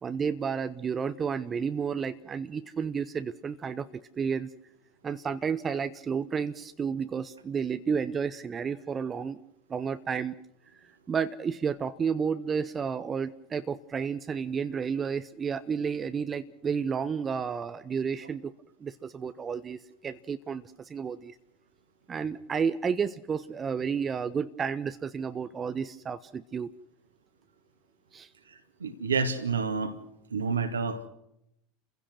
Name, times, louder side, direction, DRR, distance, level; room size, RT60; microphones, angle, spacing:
voice 1, 0.0-3.9 4.2-4.5 5.0-9.4 9.7-10.3 11.1-18.5 18.8-20.6 20.9-21.3 22.1-26.7 28.1-28.3, right 6 dB, 25° right, 12 dB, 1.0 m, -31 dB
voice 2, 28.8-29.9 30.3-31.1, right 5 dB, 80° right, 7 dB, 2.3 m, -29 dB
29.5 x 16.0 x 6.1 m, 0.79 s
figure-of-eight pair, 80°, 0 cm